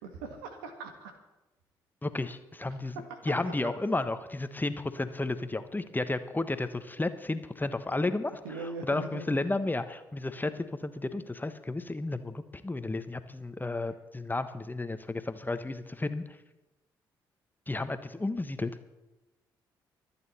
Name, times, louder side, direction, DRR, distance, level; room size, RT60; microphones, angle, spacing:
voice 1, 0.0-1.1 2.9-3.5 8.4-9.4, right 3 dB, 80° right, 7 dB, 1.6 m, -41 dB
voice 2, 2.0-8.3 8.9-16.2 17.7-18.7, left 2 dB, 15° left, 11 dB, 1.2 m, -32 dB
24.5 x 8.9 x 4.2 m, 1.0 s
hypercardioid pair, 45°, 11 cm